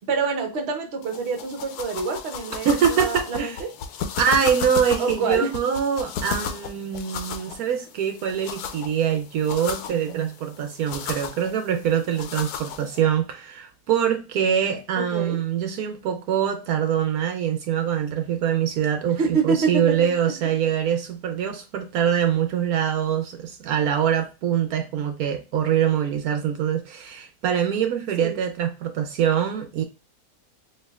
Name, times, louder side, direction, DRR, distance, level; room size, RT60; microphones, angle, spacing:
voice 1, 0.1-3.7 5.0-5.5 15.0-15.4 19.2-20.0 28.2-28.4, right 4 dB, 50° right, 0.9 m, -26 dB
sound 1, 1.0-13.0, left 7 dB, 90° left, 1.1 m, -34 dB
voice 2, 2.6-3.6 4.2-29.8, right 8 dB, 75° right, 1.1 m, -24 dB
4.3 x 2.8 x 2.3 m
omnidirectional pair, 1.6 m